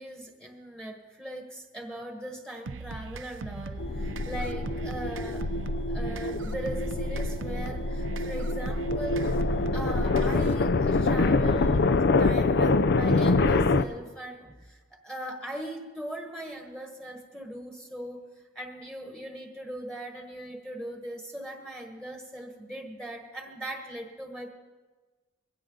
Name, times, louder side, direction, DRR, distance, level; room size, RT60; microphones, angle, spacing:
voice 1, 0.0-5.5 5.9-9.4 9.7-18.2 18.5-24.5, right 1 dB, 5° left, 2 dB, 1.4 m, -39 dB
sound 1, 2.7-10.6, right 4 dB, 70° right, 0.6 m, -40 dB
sound 2, 3.8-13.8, left 3 dB, 55° left, 0.5 m, -25 dB
22.0 x 16.5 x 3.9 m, 1.3 s
head